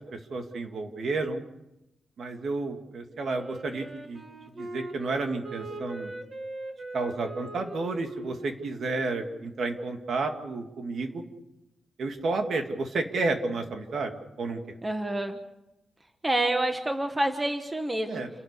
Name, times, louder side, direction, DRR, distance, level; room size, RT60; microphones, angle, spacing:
voice 1, 0.1-1.4 2.2-4.2 4.6-6.1 6.9-11.2 12.0-14.1 14.4-14.8 18.1-18.3, right 3 dB, 55° right, 5 dB, 2.3 m, -31 dB
Wind instrument woodwind instrument, 3.2-10.0, right 2 dB, 30° right, 2.2 m, -41 dB
voice 2, 14.8-15.4 16.2-18.2, right 1 dB, 15° right, 6 dB, 1.2 m, -28 dB
29.0 x 12.0 x 8.3 m, 0.94 s
wide cardioid pair, 170°, 0 cm